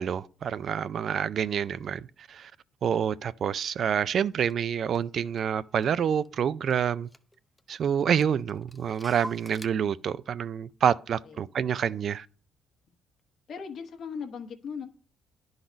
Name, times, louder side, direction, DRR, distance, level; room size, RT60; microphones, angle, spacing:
voice 1, 0.0-2.0 2.3-2.5 2.8-7.1 7.7-12.3, right 8 dB, 60° right, 0.3 m, -27 dB
Clock, 4.5-4.6 4.9-6.4 6.7-6.8 7.1-7.7 8.0-9.7, left 1 dB, 10° left, 0.6 m, -46 dB
voice 2, 13.5-14.9, left 6 dB, 65° left, 1.3 m, -38 dB
10.5 x 4.0 x 5.1 m
supercardioid pair, 70°, 0 cm